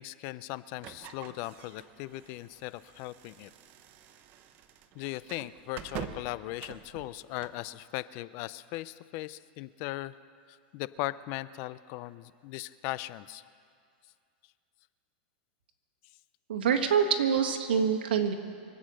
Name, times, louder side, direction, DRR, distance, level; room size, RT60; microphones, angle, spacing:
voice 1, 0.0-3.5 4.9-10.2 10.7-13.4, left 17 dB, 45° left, 17 dB, 0.5 m, -38 dB
sound 1, 0.8-7.7, right 9 dB, 35° right, 0.9 m, -46 dB
voice 2, 16.5-18.3, right 7 dB, 90° right, 4 dB, 1.7 m, -25 dB
25.5 x 8.6 x 6.3 m, 2.3 s
supercardioid pair, 145°, 5 cm